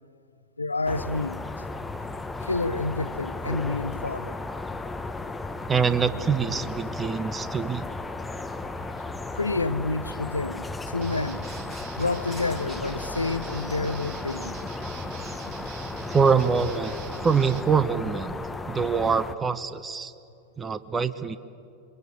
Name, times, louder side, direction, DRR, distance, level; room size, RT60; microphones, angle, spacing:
voice 1, 0.6-1.4 2.4-4.4 9.3-11.5 12.0-14.6, left 3 dB, 80° left, 0.7 m, -29 dB
sound 1, 0.8-19.3, left 3 dB, 10° left, 1.1 m, -35 dB
voice 2, 5.7-7.9 16.1-18.4 18.7-20.1 20.6-21.4, right 6 dB, 20° right, 1.1 m, -24 dB
Guitar, 11.0-17.7, right 8 dB, 45° right, 2.1 m, -44 dB
27.5 x 23.5 x 8.4 m
figure-of-eight pair, 90°, 0 cm